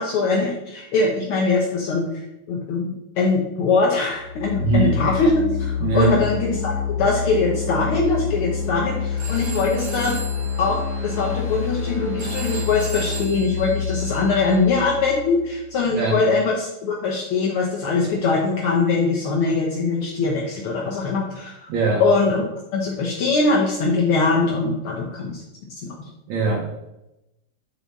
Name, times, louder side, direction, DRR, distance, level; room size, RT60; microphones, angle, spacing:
voice 1, 0.0-6.7 7.0-10.2 10.6-21.7 22.0-22.4 22.7-25.4 25.8-25.9, left 3 dB, 75° left, -2 dB, 1.2 m, -22 dB
sound 1, 4.1-15.9, left 6 dB, 30° left, 1.7 m, -28 dB
voice 2, 4.6-4.9 5.8-6.2 15.9-16.1 21.7-22.0 26.3-26.7, right 4 dB, 70° right, -2 dB, 2.1 m, -21 dB
Telephone, 8.0-14.9, right 4 dB, 40° right, 2.3 m, -39 dB
7.3 x 4.7 x 4.0 m, 0.92 s
omnidirectional pair, 3.5 m